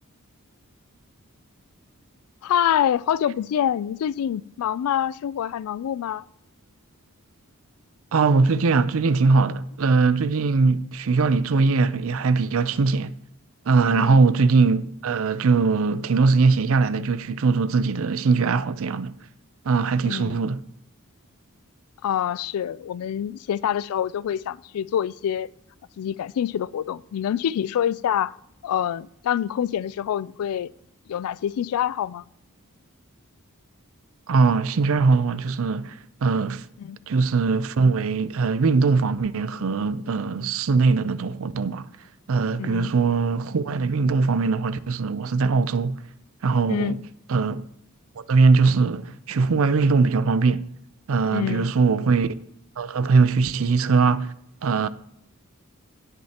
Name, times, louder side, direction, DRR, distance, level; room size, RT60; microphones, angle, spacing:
voice 1, 2.4-6.2 13.8-14.2 20.0-20.5 22.0-25.5 26.0-28.3 28.6-30.7 31.1-32.2 36.8-37.0 42.6-42.9 46.7-47.0 51.3-51.7, left 9 dB, 75° left, 0.3 m, -26 dB
voice 2, 8.1-13.1 13.7-19.2 19.6-20.6 34.3-36.6 37.1-41.9 42.3-46.0 46.4-47.0 47.3-47.6 48.2-50.7 51.1-52.3 52.8-54.3 54.6-54.9, right 4 dB, 65° right, 0.5 m, -21 dB
18.0 x 6.4 x 2.9 m
head